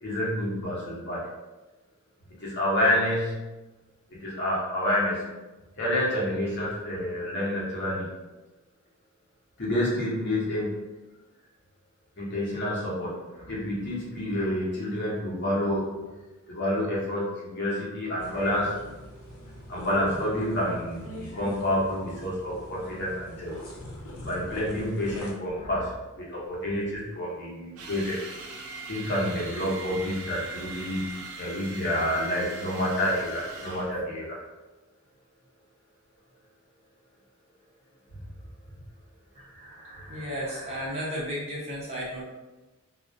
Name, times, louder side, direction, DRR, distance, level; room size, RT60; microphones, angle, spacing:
voice 1, 0.0-1.2 2.4-3.5 4.1-5.3 5.8-8.1 9.6-10.9 12.2-15.9 16.5-18.8 19.7-23.5 24.2-28.2 28.9-31.0 31.4-34.4 38.1-38.2 40.0-40.1, left 1 dB, 55° left, -6 dB, 0.8 m, -28 dB
sound 1, 18.2-25.3, equal, 85° left, 0.5 m, -42 dB
sound 2, 27.8-34.0, right 3 dB, 75° right, 0.4 m, -41 dB
voice 2, 39.3-42.2, equal, 30° right, -6 dB, 0.6 m, -34 dB
2.3 x 2.1 x 2.5 m, 1.1 s
head